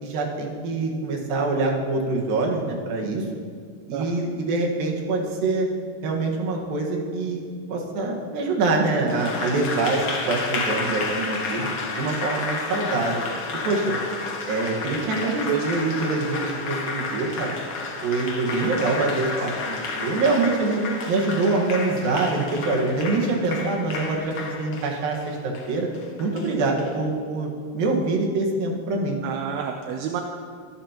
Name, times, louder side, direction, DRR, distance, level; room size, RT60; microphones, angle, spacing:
voice 1, 0.0-3.2 3.9-5.7 6.0-7.4 7.7-11.7 12.0-13.3 13.6-13.9 14.5-17.5 18.0-20.8 21.1-25.9 26.2-29.2, right 3 dB, 70° right, 0 dB, 3.1 m, -25 dB
Applause, 9.1-26.9, left 3 dB, 85° left, 1.2 m, -31 dB
voice 2, 29.2-30.2, right 9 dB, 85° right, 4 dB, 2.6 m, -28 dB
23.5 x 11.5 x 2.9 m, 2.1 s
omnidirectional pair, 4.5 m